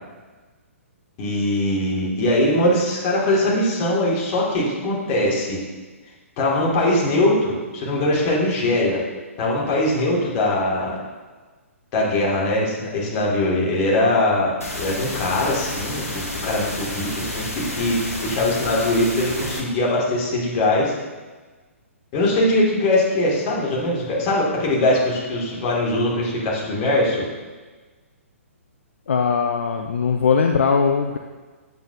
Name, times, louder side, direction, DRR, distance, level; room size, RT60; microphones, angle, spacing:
voice 1, 1.2-5.6 6.4-9.0 9.4-10.9 11.9-17.4 17.7-20.9 22.1-27.3, left 1 dB, 30° left, -5 dB, 2.4 m, -21 dB
sound 1, 14.6-19.6, left 1 dB, 80° left, 1.5 m, -30 dB
voice 2, 29.1-31.2, left 5 dB, 60° left, 4 dB, 0.5 m, -20 dB
8.5 x 8.1 x 2.8 m, 1.3 s
figure-of-eight pair, 125°, 8 cm